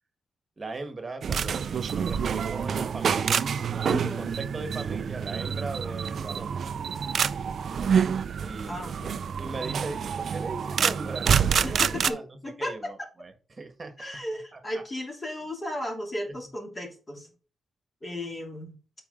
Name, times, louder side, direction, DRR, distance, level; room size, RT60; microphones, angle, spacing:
voice 1, 0.6-1.7 1.9-3.5 3.7-6.5 7.0-7.2 8.4-9.0 9.4-13.9 14.5-14.8 16.3-16.4, right 3 dB, 25° right, 7 dB, 1.6 m, -38 dB
sound 1, 1.2-12.1, right 7 dB, 55° right, 0.5 m, -27 dB
voice 2, 3.9-4.3 8.7-9.2 11.6-13.1 14.0-17.3 18.0-18.8, left 1 dB, 25° left, 0 dB, 2.8 m, -35 dB
8.6 x 4.9 x 3.8 m, 0.36 s
cardioid pair, 130°, 0 cm